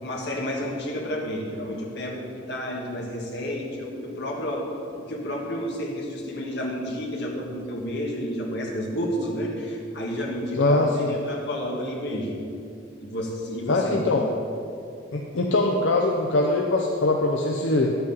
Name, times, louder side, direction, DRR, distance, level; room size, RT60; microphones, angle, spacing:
voice 1, 0.0-4.7 5.0-12.4 13.0-14.2, equal, 60° left, -1 dB, 1.5 m, -31 dB
voice 2, 10.6-11.1 13.7-14.2 15.1-18.0, left 2 dB, 80° left, 1 dB, 0.7 m, -22 dB
10.5 x 8.1 x 4.0 m, 2.5 s
head